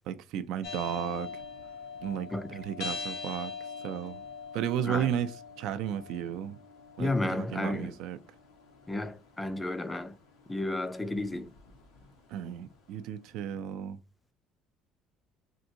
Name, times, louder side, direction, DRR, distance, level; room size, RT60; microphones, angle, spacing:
voice 1, 0.1-1.3 2.0-3.5 3.8-4.2 4.5-5.3 5.6-6.6 7.0-8.2 12.3-14.0, right 10 dB, 75° right, 0.4 m, -33 dB
sound 1, 0.6-12.8, left 5 dB, 85° left, 1.0 m, -44 dB
voice 2, 7.0-7.9 8.9-10.1 10.5-11.5, left 2 dB, 15° left, 0.4 m, -32 dB
3.5 x 2.5 x 2.8 m
cardioid pair, 110°, 0 cm